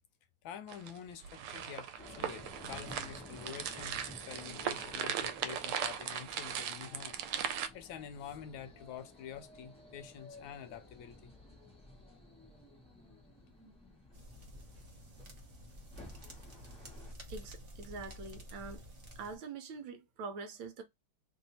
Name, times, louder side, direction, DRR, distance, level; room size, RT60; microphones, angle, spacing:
voice 1, 0.4-11.3, left 8 dB, 75° left, 1.2 m, -47 dB
sound 1, 0.7-7.7, right 9 dB, 90° right, 1.5 m, -38 dB
sound 2, 2.0-17.1, left 1 dB, 5° left, 0.7 m, -54 dB
sound 3, 14.1-19.4, equal, 40° right, 0.8 m, -50 dB
voice 2, 17.3-18.8 19.2-20.8, right 4 dB, 70° right, 1.4 m, -44 dB
3.4 x 2.7 x 4.0 m
omnidirectional pair, 2.3 m